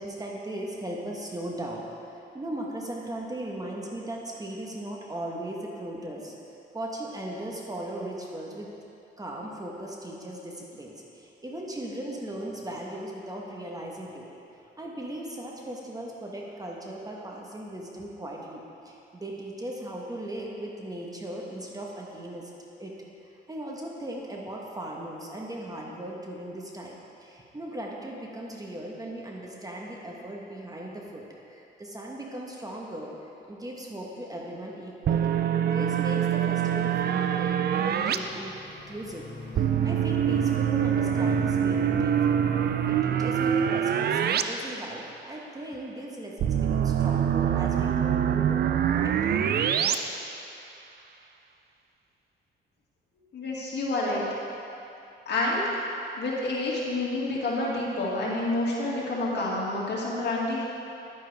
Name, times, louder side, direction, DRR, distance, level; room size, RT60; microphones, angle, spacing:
voice 1, 0.0-6.3 6.7-8.7 9.2-14.3 14.8-22.5 22.8-22.9 23.2-33.2 33.5-38.5 38.9-48.7 48.9-49.2, right 1 dB, 20° right, -2 dB, 1.3 m, -38 dB
sound 1, 35.1-38.2 39.6-44.4 44.7-44.8 46.4-50.0, right 9 dB, 55° right, 0.5 m, -24 dB
sound 2, 35.8-42.9, left 2 dB, 75° left, 1.6 m, -43 dB
voice 2, 53.3-54.3 55.3-55.6 56.2-60.7, left 2 dB, 60° left, -5 dB, 2.2 m, -28 dB
10.5 x 9.1 x 3.5 m, 2.8 s
cardioid pair, 90°, 20 cm